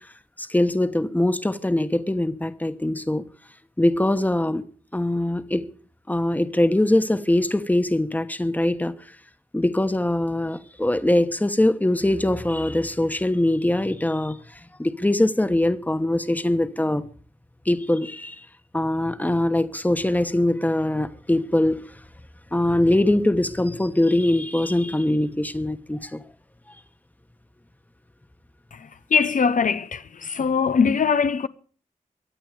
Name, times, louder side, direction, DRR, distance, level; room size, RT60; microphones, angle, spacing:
voice 1, 0.4-3.2 3.8-4.6 4.9-5.7 6.1-8.9 9.5-14.4 14.8-17.1 17.7-18.3 18.7-21.9 22.5-26.2, left 1 dB, 10° left, 1.2 m, -22 dB
voice 2, 28.7-31.5, left 6 dB, 70° left, 0.7 m, -22 dB
23.5 x 8.5 x 5.0 m
wide cardioid pair, 70°, 14 cm